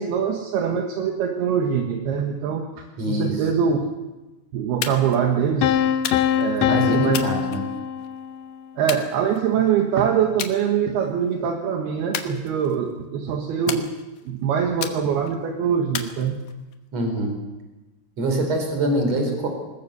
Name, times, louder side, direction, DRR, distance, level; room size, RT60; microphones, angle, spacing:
voice 1, 0.0-3.8 4.5-5.9 6.4-7.2 8.8-13.9 14.2-16.4, right 7 dB, 70° right, 3 dB, 3.2 m, -23 dB
voice 2, 3.0-3.5 6.6-7.7 16.9-17.4 18.2-19.5, right 1 dB, 40° right, 4 dB, 5.1 m, -24 dB
sound 1, 4.8-5.2 6.0-6.5 7.1-8.1 8.9-9.7 10.4-10.6 11.0-11.3 12.1-12.9 13.7-14.3 14.8-15.4 15.9-16.7, left 9 dB, 65° left, 2.5 m, -33 dB
sound 2, 5.6-8.5, left 9 dB, 85° left, 3.2 m, -23 dB
20.5 x 20.0 x 6.9 m, 1.1 s
omnidirectional pair, 5.1 m